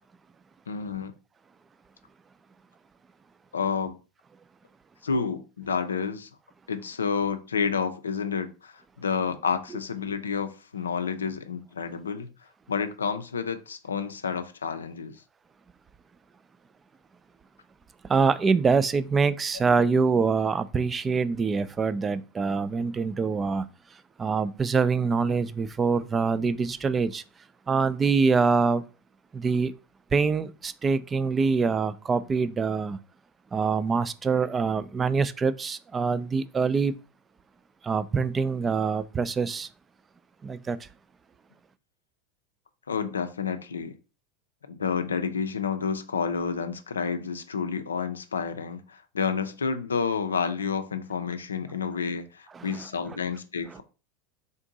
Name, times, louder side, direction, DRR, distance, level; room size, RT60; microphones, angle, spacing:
voice 1, 0.7-1.1 3.5-4.0 5.0-6.3 6.7-12.3 12.7-15.2 42.9-44.0 44.7-53.8, left 5 dB, 90° left, 0.4 m, -30 dB
voice 2, 18.1-23.6 24.2-27.2 27.7-28.8 29.3-29.7 30.1-33.0 33.5-36.9 37.8-39.7 40.4-40.8 52.5-52.7, right 5 dB, 25° right, 0.3 m, -25 dB
3.7 x 2.6 x 3.9 m
hypercardioid pair, 90°, 0 cm